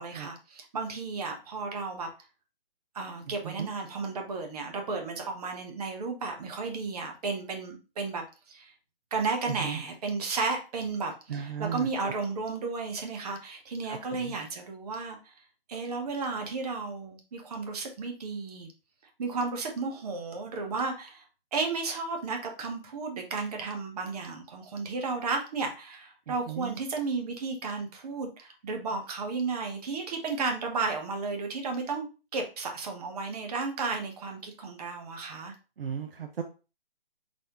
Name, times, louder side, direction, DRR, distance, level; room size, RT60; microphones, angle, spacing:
voice 1, 0.0-2.1 2.9-8.7 9.1-15.3 15.7-18.7 19.2-21.2 21.5-32.1 32.3-35.5, right 4 dB, 40° right, 4 dB, 1.0 m, -33 dB
voice 2, 3.3-3.7 9.5-9.8 11.3-12.1 13.8-14.4 26.3-26.8 35.8-36.4, right 8 dB, 65° right, 6 dB, 0.7 m, -36 dB
4.2 x 3.2 x 2.9 m, 0.32 s
hypercardioid pair, 150°, 31 cm